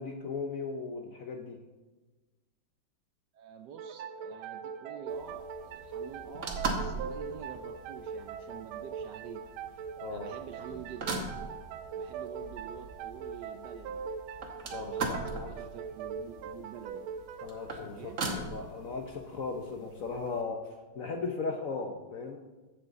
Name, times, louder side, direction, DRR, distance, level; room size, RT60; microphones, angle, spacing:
voice 1, 0.0-1.6 10.0-10.3 14.7-15.5 17.4-20.7 20.9-22.4, left 4 dB, 60° left, 3 dB, 0.9 m, -37 dB
voice 2, 3.3-9.4 9.7-11.1 11.4-11.6 11.9-14.1 14.6-17.0 17.9-18.2, right 8 dB, 70° right, 7 dB, 1.1 m, -48 dB
sound 1, 3.8-19.1, right 6 dB, 90° right, 1.4 m, -41 dB
sound 2, 5.1-20.4, right 3 dB, 45° right, 1.3 m, -41 dB
14.0 x 7.4 x 4.0 m, 1.2 s
omnidirectional pair, 2.2 m